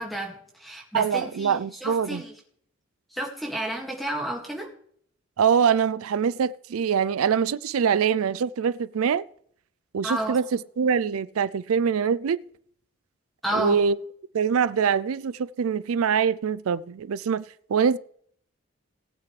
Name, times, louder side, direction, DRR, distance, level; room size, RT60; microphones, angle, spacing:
voice 1, 0.0-2.3 3.1-4.7 10.0-10.4 13.4-13.8, right 1 dB, ahead, 2.0 m, -31 dB
voice 2, 0.9-2.2 5.4-9.2 9.9-12.4 13.5-14.0 14.3-17.4 17.7-18.0, right 7 dB, 90° right, 0.4 m, -24 dB
18.5 x 8.3 x 3.3 m
head